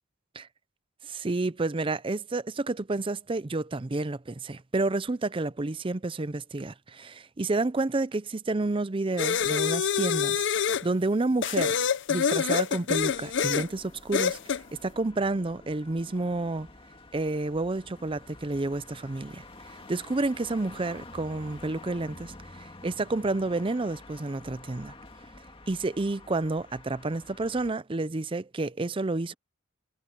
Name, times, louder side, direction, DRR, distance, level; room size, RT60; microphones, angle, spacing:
voice 1, 1.0-11.8 12.1-14.4 14.8-16.7 17.1-19.4 19.7-22.3 22.6-24.9 25.7-29.3, right 2 dB, 25° right, 0.5 m, -30 dB
sound 1, 9.2-10.9 11.4-13.7 14.1-14.6, left 7 dB, 60° left, 0.6 m, -26 dB
sound 2, 12.9-27.7, left 2 dB, 25° left, 2.0 m, -49 dB
head